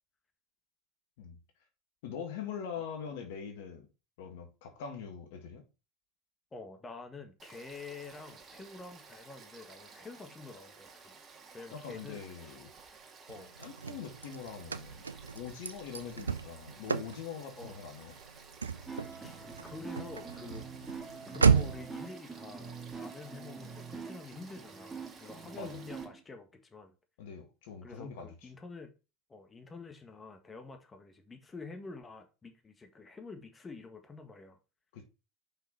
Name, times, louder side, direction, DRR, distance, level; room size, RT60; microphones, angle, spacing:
voice 1, 2.0-3.9 4.2-5.6 11.7-12.7 13.6-15.0 15.3-18.1 25.6-25.8 27.2-28.5 34.9-35.0, left 7 dB, 65° left, 1.7 m, -43 dB
voice 2, 6.5-11.1 11.5-12.6 13.3-13.5 17.6-17.8 19.2-19.4 19.7-20.7 21.3-26.9 27.8-28.9 29.3-34.6, left 3 dB, 20° left, 1.8 m, -48 dB
Frog / Stream, 7.4-26.0, right 5 dB, 35° right, 2.0 m, -54 dB
Car / Slam, 13.3-22.0, right 6 dB, 90° right, 0.4 m, -33 dB
sound 1, 18.9-26.2, right 5 dB, 15° right, 1.9 m, -45 dB
5.9 x 5.8 x 4.4 m
hypercardioid pair, 75°, 0 cm